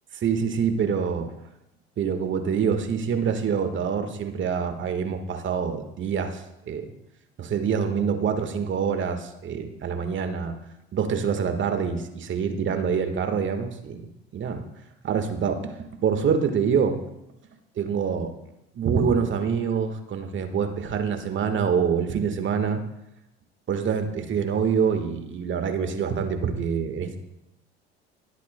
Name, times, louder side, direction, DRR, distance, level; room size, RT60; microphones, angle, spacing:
voice 1, 0.2-1.3 2.0-6.9 7.4-10.5 10.9-14.1 14.3-14.6 15.0-15.7 16.0-17.0 17.8-18.3 18.7-22.8 23.7-27.2, right 6 dB, 35° right, 7 dB, 1.5 m, -25 dB
24.0 x 8.2 x 2.2 m, 0.87 s
hypercardioid pair, 70°, 32 cm